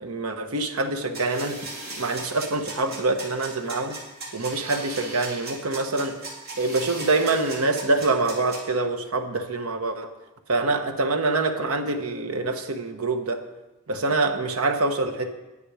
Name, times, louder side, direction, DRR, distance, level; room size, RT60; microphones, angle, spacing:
voice 1, 0.0-4.0 4.3-6.2 6.6-10.1 10.5-13.4 13.9-15.3, right 3 dB, 90° right, 6 dB, 1.1 m, -25 dB
sound 1, 1.1-8.6, right 2 dB, 45° right, 3.6 m, -37 dB
11.0 x 9.7 x 4.9 m, 1.1 s
head